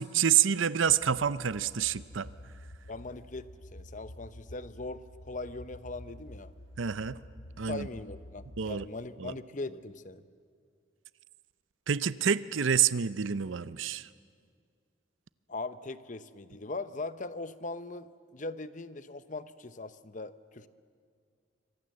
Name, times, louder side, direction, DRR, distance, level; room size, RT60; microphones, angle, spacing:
voice 1, 0.0-2.3 6.8-7.2 7.6-7.9 8.6-8.9 9.2-9.3 11.9-14.1, right 8 dB, 75° right, 16 dB, 0.6 m, -28 dB
sound 1, 0.9-8.9, left 1 dB, 90° left, 1.5 m, -49 dB
voice 2, 2.9-6.5 7.7-10.2 15.5-20.7, left 3 dB, 40° left, 13 dB, 0.8 m, -40 dB
27.0 x 25.0 x 7.7 m, 2.1 s
head